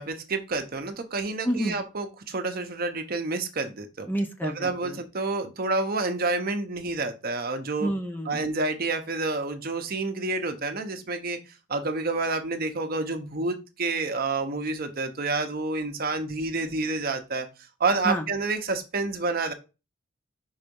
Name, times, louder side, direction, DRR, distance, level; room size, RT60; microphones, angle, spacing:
voice 1, 0.0-4.1 4.4-7.9 8.2-11.4 11.7-17.5 17.8-19.5, right 3 dB, 45° right, 6 dB, 0.9 m, -29 dB
voice 2, 1.4-1.8 4.1-5.0 7.8-8.4 18.0-18.3, right 1 dB, 10° left, 5 dB, 0.7 m, -29 dB
5.6 x 4.0 x 5.3 m, 0.30 s
head